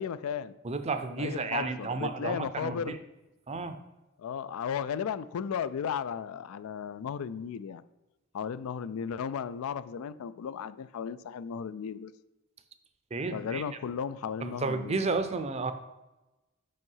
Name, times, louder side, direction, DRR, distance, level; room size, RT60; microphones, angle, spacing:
voice 1, 0.0-0.6 1.2-3.0 4.2-7.8 8.3-12.1 13.3-15.0, left 7 dB, 85° left, 15 dB, 0.4 m, -35 dB
voice 2, 0.6-3.0 3.5-3.8 13.1-13.6 14.4-15.7, right 3 dB, 30° right, 9 dB, 0.5 m, -32 dB
5.6 x 5.4 x 5.5 m, 1.0 s
head